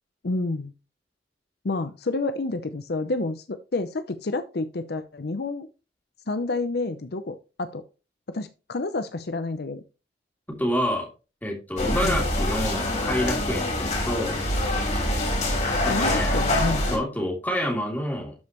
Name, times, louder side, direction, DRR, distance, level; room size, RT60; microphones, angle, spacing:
voice 1, 0.2-0.7 1.6-5.7 6.3-7.8 8.3-9.8 12.0-12.2 15.8-16.9, left 3 dB, 65° left, 11 dB, 0.6 m, -29 dB
voice 2, 10.6-11.1 11.4-14.4 15.8-16.4 16.9-18.3, equal, 10° left, 1 dB, 2.9 m, -28 dB
sound 1, 11.8-17.0, left 1 dB, 45° left, 3.6 m, -25 dB
12.5 x 5.3 x 3.0 m, 0.31 s
head